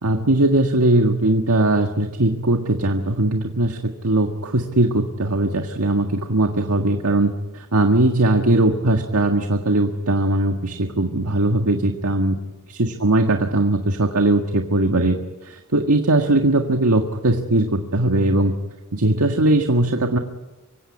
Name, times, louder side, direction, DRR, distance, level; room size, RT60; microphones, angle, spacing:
voice 1, 0.0-12.4 12.8-18.5 18.9-20.2, right 2 dB, 85° right, 4 dB, 1.8 m, -19 dB
25.0 x 16.5 x 9.8 m, 1.1 s
head